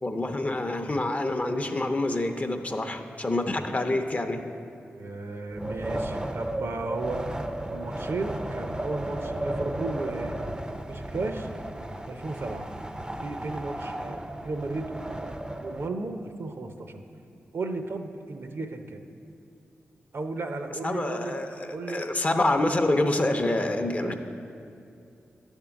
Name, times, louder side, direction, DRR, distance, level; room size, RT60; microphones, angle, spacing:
voice 1, 0.0-4.4 20.8-24.1, left 2 dB, 35° left, 6 dB, 0.6 m, -27 dB
voice 2, 5.0-7.2 7.7-10.4 10.9-11.5 12.1-12.7 13.2-15.3 15.6-17.0 17.5-19.1 20.1-21.3 21.7-22.1 24.0-24.1, right 3 dB, 60° right, 6 dB, 0.6 m, -34 dB
Wind, 5.5-15.9, right 1 dB, 15° right, 0.5 m, -34 dB
9.7 x 3.7 x 7.0 m, 2.5 s
cardioid pair, 50°, 5 cm